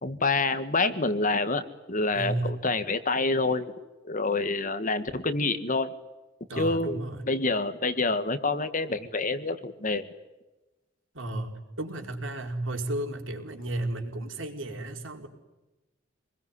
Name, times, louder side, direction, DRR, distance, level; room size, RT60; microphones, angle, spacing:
voice 1, 0.0-1.6 1.9-3.7 4.1-5.9 6.6-10.0, left 3 dB, 40° left, 10 dB, 1.9 m, -27 dB
voice 2, 2.1-2.5 6.5-7.2 11.1-15.3, right 1 dB, 85° right, 3 dB, 4.9 m, -33 dB
27.5 x 21.5 x 9.8 m, 1.1 s
head